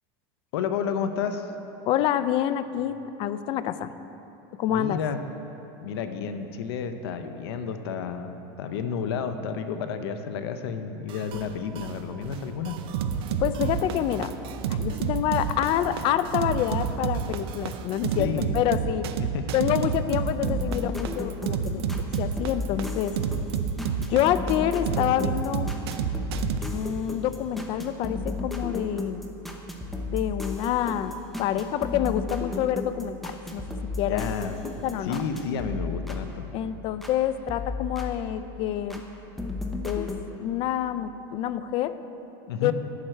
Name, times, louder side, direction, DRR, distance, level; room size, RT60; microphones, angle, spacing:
voice 1, 0.5-1.5 4.7-5.2 5.8-12.8 18.2-18.5 19.2-19.4 34.1-34.6 35.1-36.5 42.5-42.7, left 6 dB, 85° left, 8 dB, 0.7 m, -31 dB
voice 2, 1.9-3.9 4.6-5.0 13.4-14.3 14.7-19.0 19.5-21.8 22.2-23.1 24.1-25.7 26.7-29.2 30.0-33.6 34.0-34.3 34.8-35.2 36.5-39.0 39.8-40.1 40.4-42.0 42.6-42.7, left 11 dB, 45° left, 13 dB, 0.4 m, -27 dB
sound 1, 11.1-18.2, right 6 dB, 45° right, 0.6 m, -42 dB
sound 2, 12.9-26.6, right 7 dB, 90° right, 0.6 m, -28 dB
sound 3, 20.5-37.2 37.5-39.0 39.4-40.2, left 2 dB, ahead, 0.7 m, -34 dB
11.5 x 4.4 x 7.5 m, 2.9 s
supercardioid pair, 140°, 13 cm